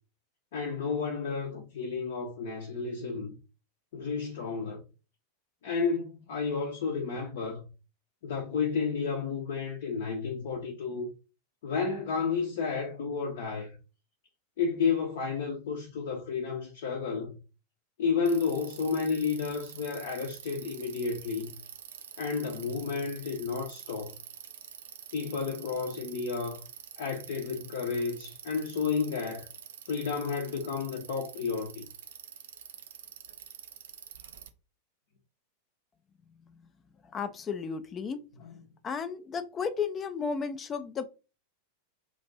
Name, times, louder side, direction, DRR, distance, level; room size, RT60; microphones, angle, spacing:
voice 1, 0.5-3.3 3.9-4.8 5.6-7.7 8.2-11.1 11.6-13.7 14.6-17.4 18.0-21.5 22.2-24.1 25.1-26.6 27.0-29.5 29.9-31.9 38.4-38.5, left 5 dB, 55° left, 0.7 m, -31 dB
Bicycle, 18.2-34.5, right 9 dB, 60° right, 0.4 m, -47 dB
voice 2, 37.1-38.2 38.8-41.0, left 6 dB, 25° left, 0.4 m, -33 dB
3.0 x 2.5 x 4.0 m
figure-of-eight pair, 90°, 0 cm